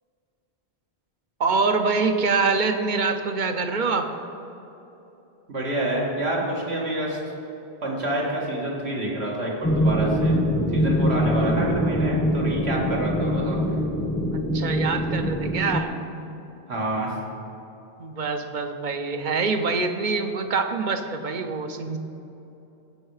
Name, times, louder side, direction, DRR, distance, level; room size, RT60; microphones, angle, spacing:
voice 1, 1.4-4.1 14.3-15.9 18.0-22.0, right 4 dB, 50° right, 7 dB, 0.8 m, -25 dB
voice 2, 5.5-7.2 7.8-10.3 10.7-13.6 16.7-17.2, right 1 dB, 80° right, -3 dB, 2.1 m, -27 dB
sound 1, 9.6-15.8, equal, 15° left, 0.6 m, -23 dB
15.5 x 5.6 x 4.8 m, 2.9 s
omnidirectional pair, 1.1 m